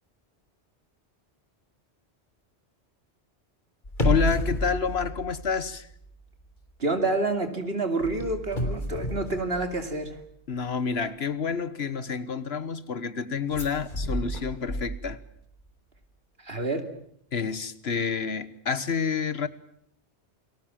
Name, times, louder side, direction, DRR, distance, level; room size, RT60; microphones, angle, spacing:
sound 1, 3.8-6.1 6.4-6.7 8.0-10.2 13.5-15.4 15.7-15.8, equal, 45° left, 3.7 m, -31 dB
voice 1, 4.0-5.9 10.5-15.2 17.3-19.5, left 6 dB, 65° left, 15 dB, 1.5 m, -29 dB
voice 2, 6.8-10.2 16.4-16.9, right 2 dB, 60° right, 7 dB, 2.9 m, -28 dB
29.0 x 20.0 x 7.4 m, 0.67 s
omnidirectional pair, 1.1 m